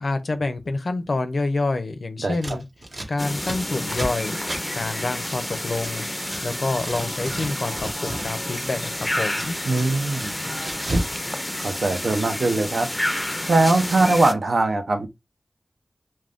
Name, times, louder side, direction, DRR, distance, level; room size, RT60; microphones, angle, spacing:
voice 1, 0.0-2.7 3.1-4.4 4.7-6.1 6.4-9.5, left 3 dB, 80° left, 0.4 m, -27 dB
Scissors, 2.3-6.4 6.7-8.3 8.6-11.2 11.4-12.3, right 1 dB, 60° right, 1.0 m, -33 dB
sound 1, 3.2-14.3, left 1 dB, 20° left, 0.4 m, -30 dB
voice 2, 9.7-10.3 11.6-12.9 13.5-15.1, right 2 dB, 85° right, 0.5 m, -21 dB
2.4 x 2.2 x 3.4 m
wide cardioid pair, 60°, 0 cm